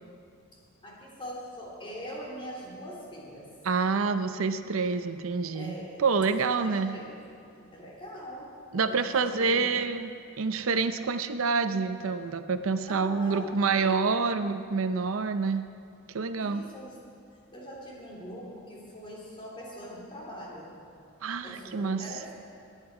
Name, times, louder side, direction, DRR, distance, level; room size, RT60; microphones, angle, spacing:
voice 1, 0.8-3.5 5.5-6.0 6.4-7.2 7.6-9.8 12.9-14.2 16.4-17.0 17.5-20.8 21.4-22.3, equal, 25° left, -4 dB, 3.3 m, -42 dB
voice 2, 3.6-5.7 6.0-6.9 8.7-15.6 16.1-16.6 21.2-22.0, right 4 dB, 75° right, 10 dB, 0.6 m, -27 dB
21.0 x 9.1 x 4.9 m, 2.4 s
head